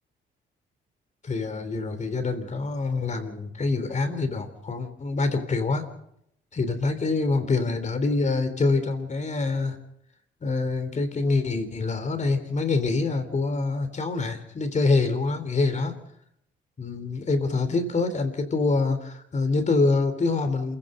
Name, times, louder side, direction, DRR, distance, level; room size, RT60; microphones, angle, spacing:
voice 1, 1.2-5.8 6.5-9.8 10.4-15.9 16.8-20.8, left 3 dB, 35° left, 9 dB, 3.6 m, -25 dB
27.5 x 16.0 x 6.8 m, 0.75 s
cardioid pair, 90°, 20 cm